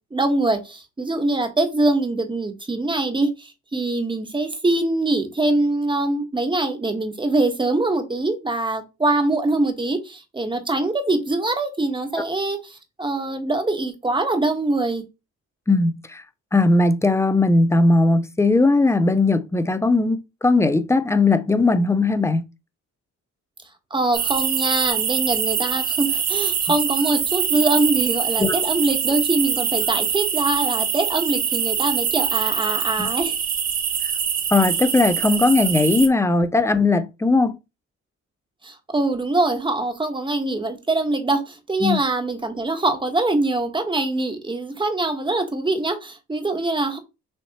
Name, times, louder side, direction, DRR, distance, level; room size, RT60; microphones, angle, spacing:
voice 1, 0.1-15.0 23.9-33.4 38.6-47.0, right 2 dB, 15° right, 1.2 m, -23 dB
voice 2, 15.7-16.2 16.5-22.5 28.4-28.6 33.0-33.1 34.5-37.6 41.8-42.0, left 3 dB, 10° left, 0.5 m, -18 dB
sound 1, 24.1-36.1, right 8 dB, 65° right, 1.1 m, -24 dB
6.4 x 2.9 x 2.9 m
cardioid pair, 90°, 30 cm